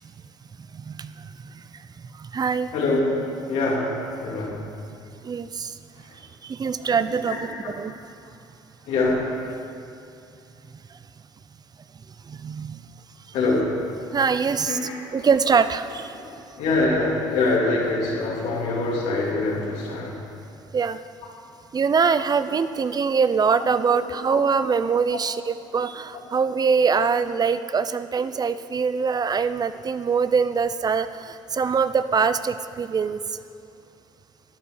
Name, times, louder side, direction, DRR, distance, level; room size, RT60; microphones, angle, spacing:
voice 1, 0.7-1.5 2.2-2.7 5.2-5.7 6.4-7.9 12.3-12.8 14.1-14.8 15.1-16.1 20.7-21.0 21.7-33.2, right 5 dB, 35° right, 13 dB, 0.5 m, -23 dB
voice 2, 2.7-3.1 3.5-3.9 4.2-4.6 7.3-7.7 8.9-9.3 13.3-13.7 14.7-15.1 16.1-20.2 23.9-24.4, left 2 dB, 75° left, -4 dB, 3.3 m, -24 dB
13.0 x 9.7 x 6.4 m, 2.6 s
supercardioid pair, 70°, 12 cm